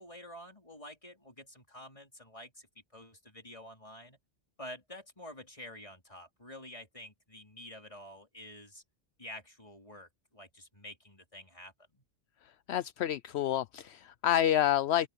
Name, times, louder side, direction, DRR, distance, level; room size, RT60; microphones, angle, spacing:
voice 1, 0.0-2.7 2.9-4.2 4.6-8.8 9.2-12.1, left 1 dB, 30° left, 4.2 m, -49 dB
voice 2, 12.7-15.1, left 11 dB, 75° left, 0.8 m, -28 dB
open air
omnidirectional pair, 1.2 m